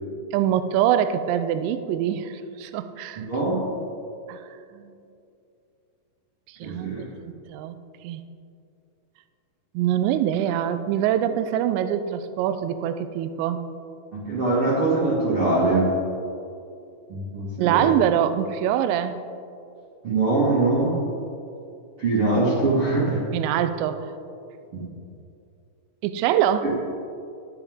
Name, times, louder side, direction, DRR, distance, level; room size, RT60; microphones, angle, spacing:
voice 1, 0.3-3.3 4.3-4.5 4.7-5.0 6.5-7.8 8.0-8.2 9.7-13.6 17.6-19.2 23.3-24.1 26.0-26.7, right 10 dB, 85° right, 11 dB, 2.6 m, -24 dB
voice 2, 3.2-3.6 6.6-7.1 14.1-15.9 17.1-17.9 20.0-21.0 22.0-23.2 24.7-24.8 26.6-26.7, right 2 dB, 55° right, -8 dB, 1.6 m, -23 dB
14.0 x 11.0 x 3.6 m, 2.6 s
omnidirectional pair, 5.7 m